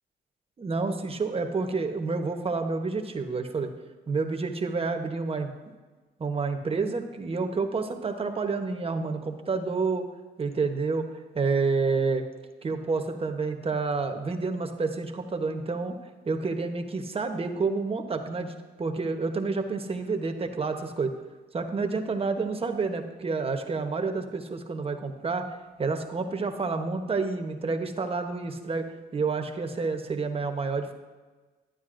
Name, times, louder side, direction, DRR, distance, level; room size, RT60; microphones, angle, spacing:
voice 1, 0.6-3.7 4.1-5.5 6.2-10.1 10.4-11.1 11.3-12.2 12.6-16.0 16.2-21.1 21.5-25.4 25.8-28.9 29.1-30.9, right 4 dB, 30° right, 5 dB, 0.9 m, -29 dB
11.5 x 9.2 x 2.6 m, 1.3 s
cardioid pair, 95°, 20 cm